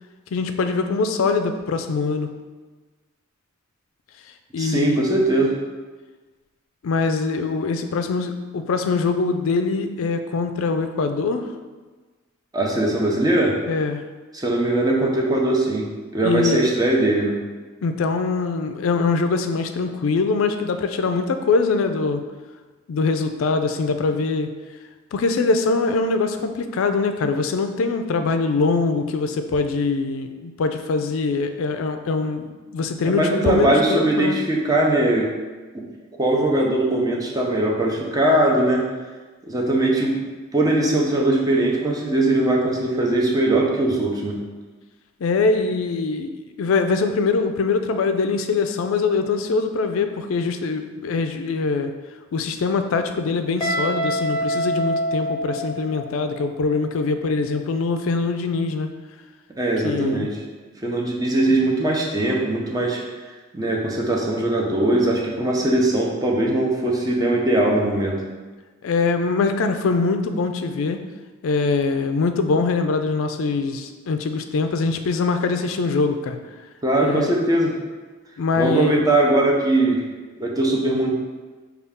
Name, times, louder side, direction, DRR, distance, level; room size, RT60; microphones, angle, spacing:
voice 1, 0.3-2.3 4.5-5.0 6.8-11.5 13.7-14.0 16.2-16.7 17.8-22.2 22.9-24.5 25.1-34.4 45.2-51.9 52.3-58.9 59.8-60.3 61.5-61.6 68.8-71.0 71.4-76.4 77.0-77.4 78.4-79.0, left 4 dB, 80° left, 7 dB, 0.4 m, -23 dB
voice 2, 4.6-5.6 12.5-13.6 14.3-15.9 16.1-17.3 33.0-35.3 35.7-35.8 36.2-38.9 39.5-40.2 40.5-44.4 59.6-60.4 60.8-63.0 63.5-68.2 76.8-77.7 78.6-80.0 80.4-81.1, right 1 dB, 20° right, -1 dB, 0.6 m, -20 dB
Guitar, 53.6-56.4, equal, 25° left, 0.7 m, -25 dB
5.4 x 2.4 x 3.5 m, 1.3 s
head